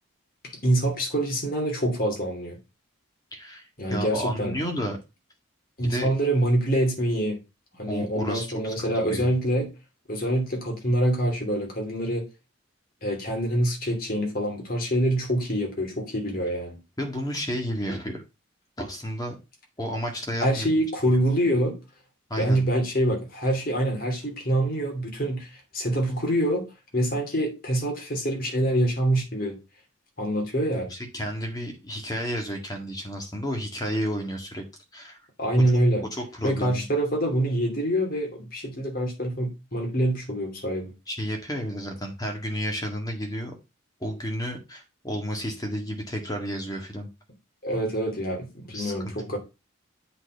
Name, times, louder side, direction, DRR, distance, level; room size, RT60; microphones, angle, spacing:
voice 1, 0.6-2.6 3.8-4.5 5.8-7.4 7.8-9.7 10.1-12.3 13.0-16.8 20.4-21.8 22.4-26.7 26.9-29.6 30.2-30.9 35.4-36.1 36.4-40.9 47.6-49.4, right 1 dB, 45° left, 2.7 m, -25 dB
voice 2, 3.3-5.0 5.8-6.1 7.9-9.3 17.0-18.2 18.8-19.4 19.8-20.7 22.3-22.6 30.9-35.2 36.1-36.8 41.1-43.5 44.0-47.1 48.7-48.9 49.2-49.4, equal, 20° left, 1.7 m, -32 dB
8.0 x 4.3 x 5.5 m
head